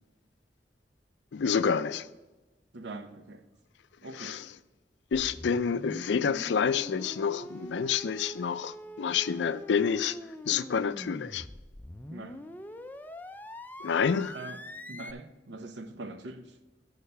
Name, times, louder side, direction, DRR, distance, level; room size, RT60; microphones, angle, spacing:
voice 1, 1.3-2.1 4.2-4.4 5.1-10.2 10.5-11.5 13.8-14.4, left 6 dB, 80° left, 0.4 m, -28 dB
voice 2, 2.7-3.4 4.0-4.4 12.1-12.4 14.3-14.6 14.9-16.6, right 2 dB, 80° right, 0.8 m, -42 dB
sound 1, 5.1-15.1, left 1 dB, 10° left, 0.3 m, -43 dB
6.6 x 6.5 x 6.7 m
head